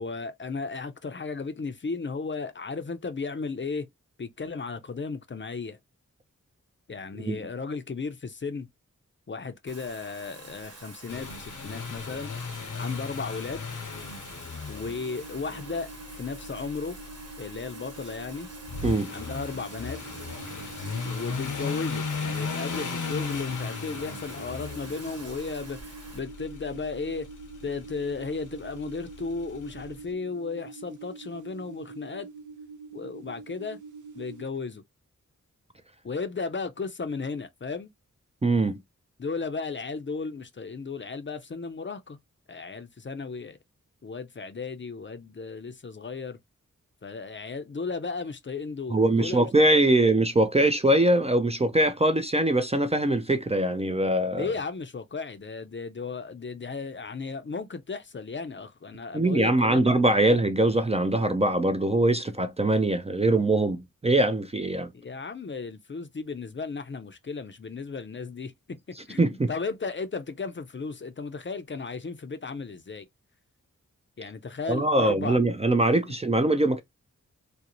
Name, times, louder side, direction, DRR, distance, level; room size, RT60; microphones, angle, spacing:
voice 1, 0.0-3.9 4.2-5.8 6.9-8.7 9.3-12.3 12.8-13.7 14.7-17.0 17.4-18.5 19.1-20.0 21.0-25.8 26.1-27.3 27.6-32.3 32.9-33.8 34.1-34.8 36.0-37.9 39.2-42.2 42.5-43.6 44.0-46.4 47.0-49.5 49.8-50.0 54.3-59.9 60.2-60.4 64.9-73.1 74.2-75.4, left 4 dB, 40° left, 0.5 m, -35 dB
Bathtub (filling or washing), 9.7-26.2, right 3 dB, 50° right, 1.1 m, -47 dB
sound 1, 11.1-29.9, left 4 dB, 75° left, 0.7 m, -37 dB
sound 2, 14.9-34.4, right 3 dB, 70° right, 0.5 m, -45 dB
voice 2, 38.4-38.8 48.9-54.5 59.1-64.9 69.2-69.5 74.7-76.8, right 2 dB, 20° right, 0.4 m, -22 dB
2.5 x 2.0 x 2.9 m
cardioid pair, 40°, 31 cm